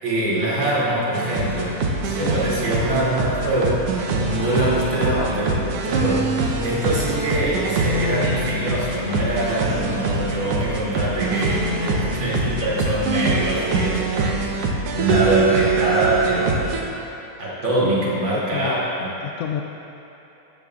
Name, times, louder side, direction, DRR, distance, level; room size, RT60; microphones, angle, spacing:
voice 1, 0.0-1.8 2.0-3.9 4.2-6.3 6.6-14.5 14.9-16.6 17.4-19.1, right 1 dB, 40° right, -7 dB, 3.4 m, -23 dB
sound 1, 1.1-16.8, right 3 dB, 65° right, 1.7 m, -24 dB
voice 2, 17.8-18.9 19.2-19.6, left 9 dB, 80° left, 2 dB, 1.4 m, -30 dB
14.0 x 13.5 x 2.5 m, 3.0 s
omnidirectional pair, 3.4 m